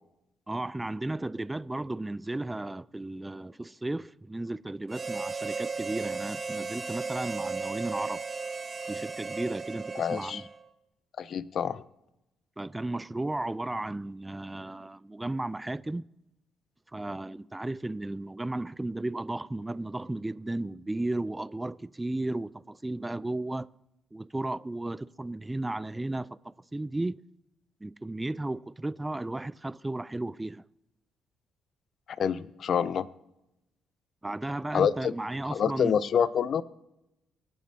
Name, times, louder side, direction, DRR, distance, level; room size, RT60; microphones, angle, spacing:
voice 1, 0.5-8.3 8.9-10.4 12.6-16.0 16.9-23.7 24.1-27.2 27.8-30.6 34.2-36.1, right 2 dB, 15° right, 0.4 m, -34 dB
Harmonica, 4.9-10.7, right 4 dB, 35° right, 1.2 m, -35 dB
voice 2, 10.0-10.4 11.2-11.8 32.2-33.1 34.7-35.1 35.5-36.6, left 7 dB, 60° left, 0.5 m, -27 dB
23.5 x 9.2 x 2.8 m
supercardioid pair, 70°, 0 cm